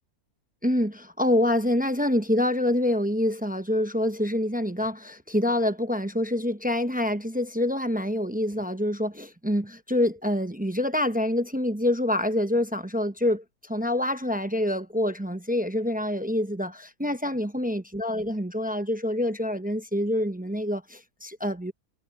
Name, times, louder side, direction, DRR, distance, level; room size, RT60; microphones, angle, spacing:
voice 1, 0.6-21.7, left 1 dB, 10° right, 0.5 m, -26 dB
omnidirectional pair, 1.6 m